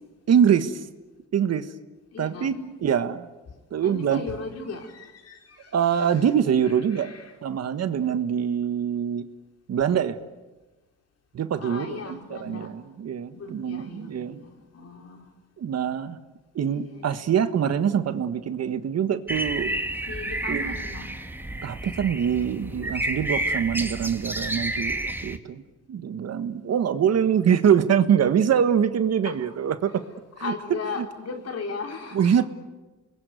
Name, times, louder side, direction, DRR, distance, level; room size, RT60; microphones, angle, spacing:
voice 1, 0.3-0.9 1.3-1.7 2.2-3.3 3.7-4.2 5.7-7.1 7.4-9.3 9.7-10.2 11.3-14.4 15.6-16.2 16.5-19.7 20.5-20.7 21.6-25.6 25.9-30.0 30.4-30.5 31.0-31.1 32.1-32.4, right 8 dB, 55° right, 11 dB, 1.5 m, -24 dB
voice 2, 2.1-2.7 3.5-6.3 6.6-7.4 11.6-12.7 13.3-15.3 16.6-17.3 20.1-21.2 29.2-29.4 30.4-32.3, left 4 dB, 55° left, 3 dB, 4.5 m, -37 dB
sound 1, 19.3-25.4, right 1 dB, 5° right, 2.0 m, -30 dB
28.0 x 21.5 x 9.4 m, 1.2 s
cardioid pair, 90°, 30 cm